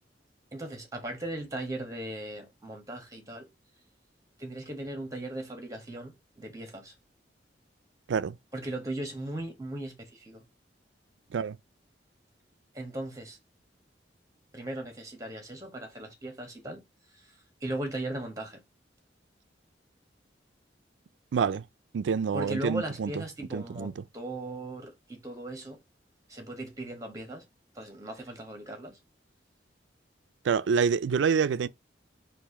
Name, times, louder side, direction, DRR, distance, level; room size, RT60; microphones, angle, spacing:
voice 1, 0.5-3.5 4.4-6.9 8.5-10.4 12.7-13.4 14.5-16.8 17.1-18.6 22.3-25.8 26.3-27.4 27.7-29.0, right 1 dB, 20° right, 1.4 m, -38 dB
voice 2, 21.3-21.7 21.9-23.2 23.5-24.0 30.4-31.7, right 6 dB, 90° right, 0.4 m, -27 dB
4.6 x 2.5 x 4.1 m
head